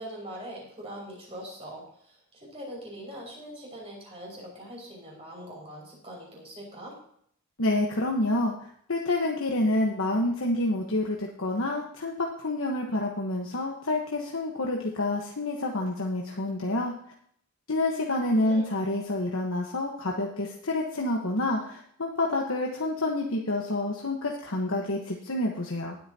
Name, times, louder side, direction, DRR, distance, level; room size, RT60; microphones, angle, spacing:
voice 1, 0.0-7.0 18.3-18.7, equal, 25° right, -3 dB, 5.8 m, -42 dB
voice 2, 7.6-16.9 17.7-26.0, left 2 dB, 65° left, -1 dB, 1.3 m, -28 dB
19.0 x 8.9 x 2.9 m, 0.64 s
head